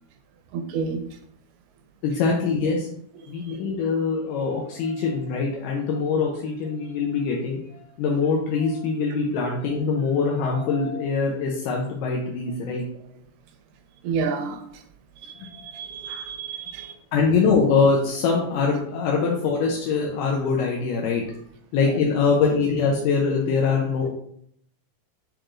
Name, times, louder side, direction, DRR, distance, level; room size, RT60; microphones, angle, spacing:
voice 1, 0.5-1.0 14.0-14.6 15.2-17.0 21.8-22.0, right 5 dB, 85° right, 2.2 m, -29 dB
voice 2, 2.0-2.9 3.3-12.8 15.4-15.7 17.1-21.2 21.7-24.1, left 5 dB, 90° left, 2.3 m, -23 dB
6.6 x 3.0 x 2.5 m
omnidirectional pair, 3.7 m